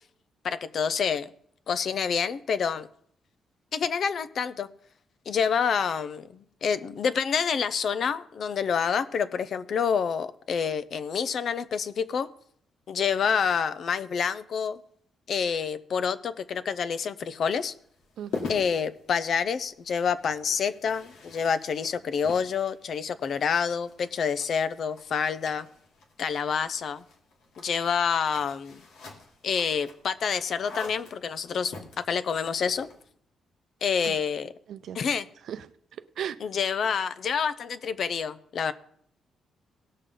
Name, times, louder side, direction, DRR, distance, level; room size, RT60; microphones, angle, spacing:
voice 1, 0.4-1.3 1.7-2.9 3.7-4.7 5.3-12.3 12.9-14.8 15.3-17.7 18.5-25.7 26.2-27.0 27.6-28.8 29.4-32.9 33.8-34.5 34.9-35.3 36.4-38.7, left 6 dB, 55° left, 14 dB, 0.6 m, -28 dB
sound 1, 17.4-33.1, left 4 dB, 85° left, 1.9 m, -45 dB
voice 2, 18.2-18.6 34.0-34.1 34.7-35.0 35.5-36.4, right 9 dB, 70° right, 12 dB, 0.6 m, -37 dB
18.0 x 6.5 x 3.8 m, 0.66 s
cardioid pair, 120°, 0 cm